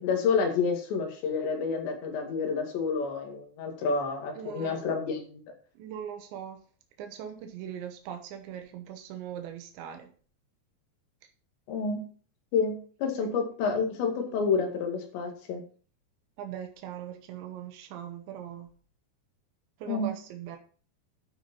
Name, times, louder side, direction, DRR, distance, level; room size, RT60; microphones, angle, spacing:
voice 1, 0.0-5.4 11.7-12.0 12.5-12.8 13.0-15.6 19.9-20.1, left 5 dB, 80° left, 3 dB, 4.5 m, -29 dB
voice 2, 4.4-4.9 5.8-6.6 7.0-10.1 16.4-18.7 19.8-20.6, right 9 dB, 85° right, 5 dB, 3.5 m, -40 dB
12.0 x 6.0 x 5.5 m, 0.41 s
omnidirectional pair, 5.0 m